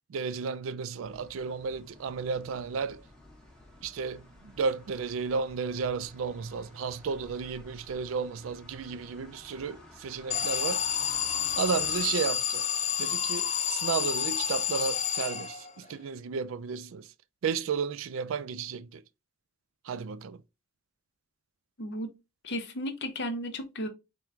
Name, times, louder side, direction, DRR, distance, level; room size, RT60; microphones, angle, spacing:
voice 1, 0.1-3.0 3.8-11.0 11.6-12.7 13.0-17.1 17.4-19.0 19.8-20.4, right 5 dB, 70° right, 0.3 m, -33 dB
sound 1, 1.0-12.1, left 1 dB, 5° left, 1.0 m, -53 dB
Alarm, 10.3-15.9, left 8 dB, 35° left, 0.3 m, -30 dB
voice 2, 21.8-22.1 22.4-23.9, equal, 55° left, 0.8 m, -34 dB
4.5 x 2.2 x 3.6 m
head